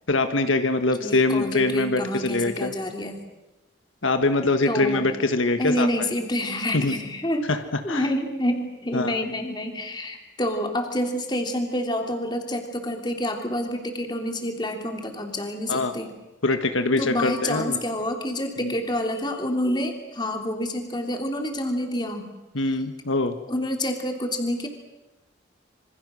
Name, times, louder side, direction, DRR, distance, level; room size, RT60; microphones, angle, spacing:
voice 1, 0.1-2.7 4.0-5.9 6.7-6.9 7.5-7.6 7.9-8.0 8.9-9.2 15.7-15.9 16.4-17.8 18.6-18.7 22.5-23.3, left 2 dB, 80° left, 8 dB, 1.5 m, -23 dB
voice 2, 1.0-3.2 4.7-5.1 5.6-7.4 7.8-16.1 17.0-22.3 23.5-24.7, left 1 dB, 20° left, 3 dB, 3.2 m, -28 dB
27.0 x 25.5 x 6.4 m, 1.0 s
head